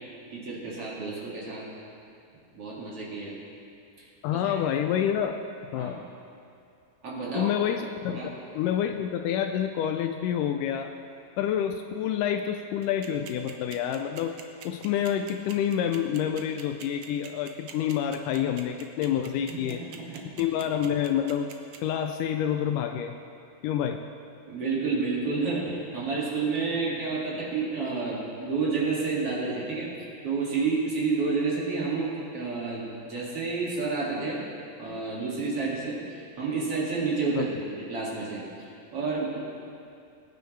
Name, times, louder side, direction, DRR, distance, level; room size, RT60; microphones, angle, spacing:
voice 1, 0.0-1.7 2.5-3.4 4.0-4.5 5.7-6.0 7.0-7.5 8.1-8.3 19.5-20.2 24.5-34.4 34.8-39.4, right 4 dB, 45° right, -6 dB, 2.8 m, -30 dB
voice 2, 4.2-5.4 5.7-6.0 7.4-8.2 8.6-10.9 11.4-14.4 14.7-19.8 20.4-21.5 21.8-23.2 23.6-24.0 37.4-37.5, left 9 dB, 80° left, 6 dB, 2.0 m, -28 dB
sound 1, 12.8-21.8, right 9 dB, 80° right, 1.5 m, -44 dB
21.5 x 9.2 x 3.2 m, 2.5 s
omnidirectional pair, 3.9 m